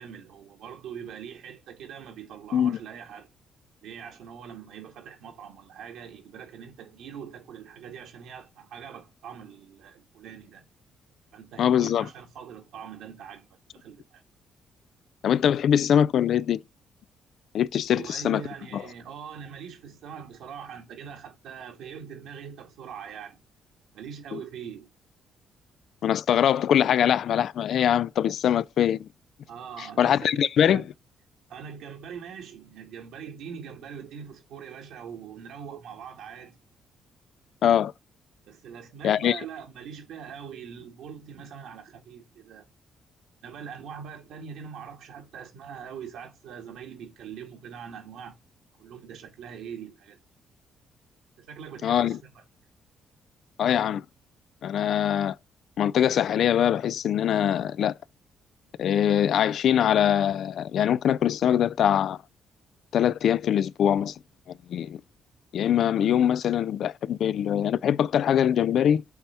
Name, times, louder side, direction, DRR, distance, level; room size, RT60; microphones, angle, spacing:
voice 1, 0.0-3.3 3.8-10.6 11.3-13.5 13.7-14.2 17.9-23.4 23.9-24.9 29.5-30.9 31.5-36.6 38.5-42.7 43.4-48.4 48.8-50.2 51.4-52.4, right 7 dB, 80° right, 1.9 m, -42 dB
voice 2, 11.6-12.1 15.2-16.6 17.5-18.4 18.7-18.8 24.3-24.4 26.0-29.1 29.8-30.8 37.6-37.9 39.0-39.4 51.8-52.2 53.6-54.0 54.6-55.4 55.8-57.9 58.8-62.2 62.9-64.1 64.7-65.0 65.5-69.0, left 9 dB, 65° left, 0.3 m, -23 dB
6.8 x 3.5 x 5.6 m
cardioid pair, 90°, 0 cm